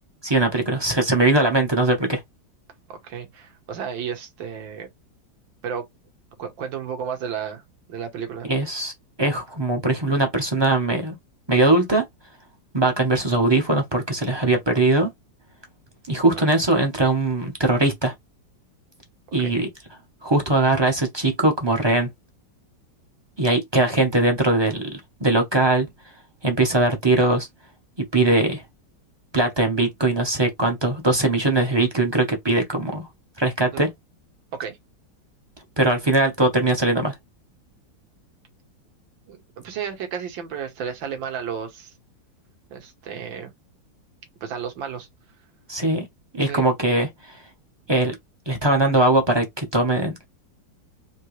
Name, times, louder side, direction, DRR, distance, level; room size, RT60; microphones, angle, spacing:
voice 1, 0.2-2.2 8.5-8.9 9.2-11.2 11.5-12.0 12.7-15.1 16.1-18.1 19.3-19.7 20.2-22.1 23.4-25.9 26.4-27.5 28.0-28.6 29.3-33.1 33.4-33.9 35.8-37.1 45.7-46.0 46.3-47.4 47.9-48.1 48.5-50.1, right 2 dB, 25° right, 0.5 m, -20 dB
voice 2, 2.9-4.9 5.6-5.8 6.4-7.6 7.9-8.5 16.3-16.5 19.4-19.6 33.7-33.9 34.6-34.8 39.3-41.9 42.7-43.5 44.4-45.1 46.4-46.6, right 7 dB, 80° right, 2.0 m, -32 dB
4.4 x 2.9 x 3.1 m
omnidirectional pair, 2.0 m